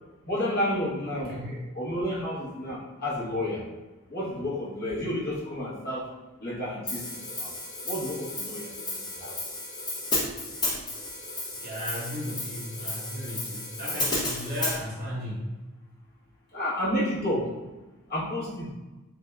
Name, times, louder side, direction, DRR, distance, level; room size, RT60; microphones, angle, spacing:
voice 1, 0.2-1.3 1.7-3.6 4.1-6.0 6.4-7.0 7.4-7.5 7.8-9.3 16.5-17.5 18.1-18.7, left 1 dB, 45° left, -7 dB, 1.0 m, -30 dB
voice 2, 1.2-1.6 7.4-7.5 11.6-15.5, equal, 40° right, -6 dB, 1.0 m, -35 dB
Hi-hat, 6.9-14.8, left 2 dB, 20° left, 0.7 m, -33 dB
3.4 x 3.4 x 2.3 m, 1.1 s
head